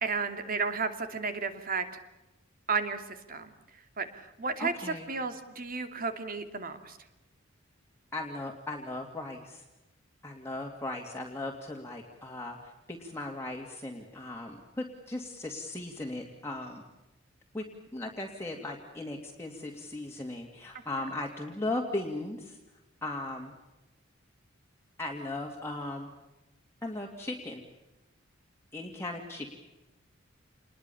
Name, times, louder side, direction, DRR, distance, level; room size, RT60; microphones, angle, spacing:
voice 1, 0.0-1.9 2.7-3.5 4.0-7.0, right 4 dB, 45° right, 8 dB, 2.7 m, -33 dB
voice 2, 4.6-5.1 8.1-9.6 10.2-16.8 17.5-17.6 17.9-22.6 23.0-23.5 25.0-26.1 26.8-27.6 28.7-29.6, left 2 dB, 15° left, -1 dB, 2.6 m, -37 dB
28.5 x 21.5 x 7.1 m, 1.0 s
head